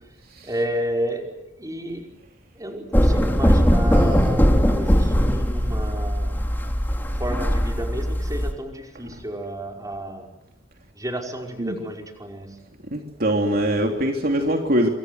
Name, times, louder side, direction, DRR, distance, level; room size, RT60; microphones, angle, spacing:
voice 1, 0.4-2.0 2.6-6.3 7.1-10.3 11.0-12.6, right 1 dB, 20° right, 2 dB, 5.3 m, -31 dB
sound 1, 2.9-8.5, equal, 10° left, 3.1 m, -20 dB
voice 2, 12.9-14.9, right 1 dB, 55° right, 3 dB, 3.1 m, -22 dB
27.0 x 26.5 x 8.1 m, 0.87 s
head